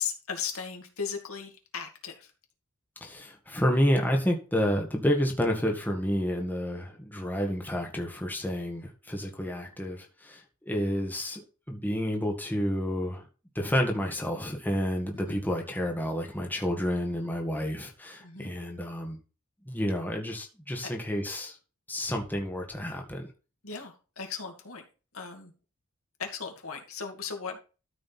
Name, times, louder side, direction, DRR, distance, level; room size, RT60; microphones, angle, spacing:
voice 1, 0.0-2.3 15.1-15.5 18.2-18.5 20.8-20.9 23.6-24.9 25.1-25.5 26.2-27.6, left 6 dB, 65° left, 3 dB, 2.4 m, -37 dB
voice 2, 3.0-11.4 11.7-13.2 13.5-19.2 19.6-21.6 21.9-23.3, equal, 10° left, 1 dB, 1.6 m, -30 dB
13.0 x 5.1 x 4.2 m, 0.33 s
head